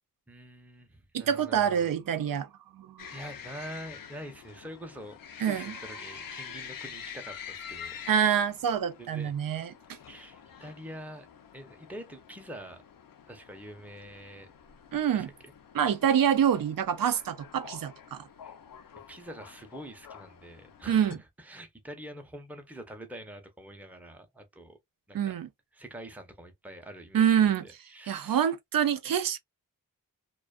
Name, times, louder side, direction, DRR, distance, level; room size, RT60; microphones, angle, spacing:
voice 1, 0.3-1.9 3.1-8.0 9.0-9.3 10.1-11.3 11.5-12.8 13.3-14.5 15.1-15.3 18.4-18.6 19.1-24.8 25.1-25.4 25.7-28.5, right 1 dB, 5° right, 0.6 m, -45 dB
voice 2, 1.1-3.1 5.4-5.7 8.1-9.7 14.9-15.3 15.7-18.3 20.9-21.2 25.1-25.5 27.1-27.7 28.1-29.4, right 8 dB, 80° right, 0.5 m, -26 dB
sound 1, 3.0-21.2, left 8 dB, 80° left, 0.5 m, -47 dB
2.4 x 2.2 x 2.3 m
wide cardioid pair, 110°, 34 cm